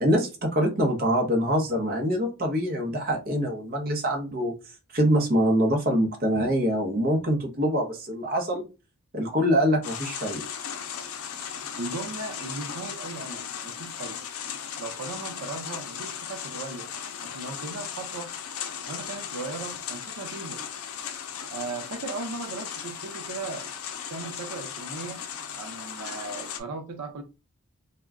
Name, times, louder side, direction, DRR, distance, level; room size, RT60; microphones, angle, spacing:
voice 1, 0.0-4.5 4.9-8.6 9.1-10.4, equal, 40° right, 0.7 m, -24 dB
sound 1, 9.8-26.6, left 8 dB, 75° left, 0.5 m, -37 dB
voice 2, 11.8-14.3 14.8-16.9 17.2-18.3 18.9-20.6 21.5-23.7 24.1-25.2 25.6-27.2, right 3 dB, 90° right, 0.6 m, -37 dB
2.2 x 2.1 x 3.5 m
head